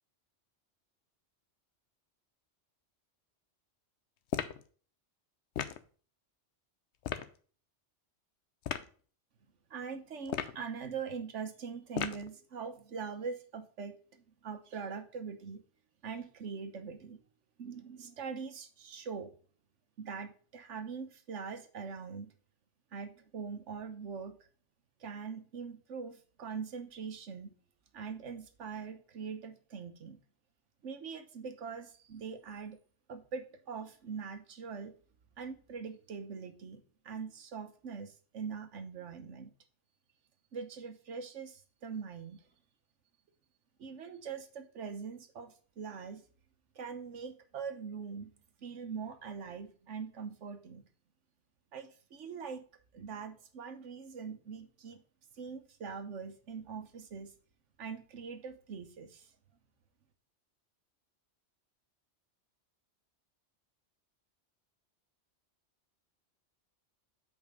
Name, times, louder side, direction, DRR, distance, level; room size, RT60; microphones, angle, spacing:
sound 1, 4.3-4.6 5.6-5.8 7.0-7.3 8.6-8.9 10.2-10.6 11.9-12.3, left 9 dB, 75° left, 0.9 m, -35 dB
voice 1, 9.7-15.6 16.0-17.2 17.6-19.3 20.0-22.3 22.9-24.4 25.0-27.5 27.9-30.2 30.8-32.8 33.1-34.9 35.4-39.5 40.5-42.5 43.8-46.2 46.7-48.3 48.6-50.8 51.7-52.6 52.9-55.0 55.3-57.3 57.8-59.3, right 6 dB, 90° right, 8 dB, 1.3 m, -42 dB
5.4 x 4.9 x 6.4 m, 0.41 s
omnidirectional pair, 1.2 m